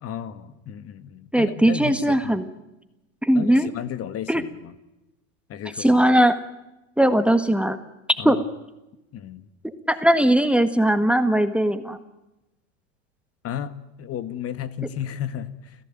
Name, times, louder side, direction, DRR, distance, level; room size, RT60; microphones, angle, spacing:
voice 1, 0.0-2.4 3.3-4.7 5.5-6.0 8.2-8.4 9.1-9.4 13.4-15.8, left 9 dB, 40° left, 13 dB, 1.9 m, -33 dB
voice 2, 1.3-2.5 3.2-3.7 4.3-4.4 5.8-6.4 7.0-7.8 8.3-8.4 9.9-12.0, right 1 dB, 5° right, 11 dB, 1.6 m, -19 dB
29.5 x 16.0 x 9.0 m, 0.96 s
hypercardioid pair, 110°, 38 cm